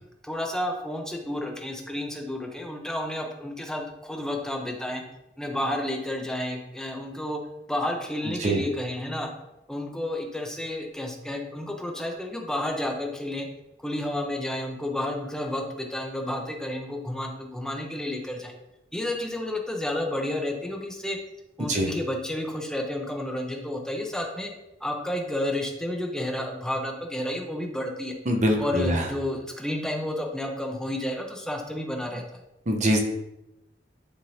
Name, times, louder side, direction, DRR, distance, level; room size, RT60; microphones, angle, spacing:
voice 1, 0.2-5.0 5.4-7.4 7.7-9.3 9.7-13.5 13.8-18.5 18.9-21.2 21.6-24.5 24.8-28.1 28.6-32.4, left 1 dB, 5° left, 1 dB, 0.8 m, -31 dB
voice 2, 21.6-21.9 28.3-29.1 32.7-33.0, right 1 dB, 40° right, 3 dB, 0.9 m, -23 dB
10.5 x 3.8 x 2.8 m, 0.91 s
head